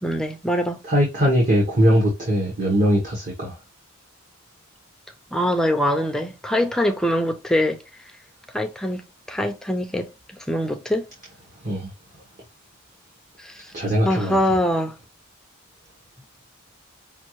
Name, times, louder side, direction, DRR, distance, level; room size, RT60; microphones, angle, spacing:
voice 1, 0.0-0.8 5.3-7.8 8.5-11.1 13.4-13.7 14.0-15.0, equal, 5° left, 0.4 m, -23 dB
voice 2, 0.8-3.5 11.6-11.9 13.7-14.4, equal, 40° right, 1.1 m, -20 dB
5.4 x 2.4 x 3.1 m
head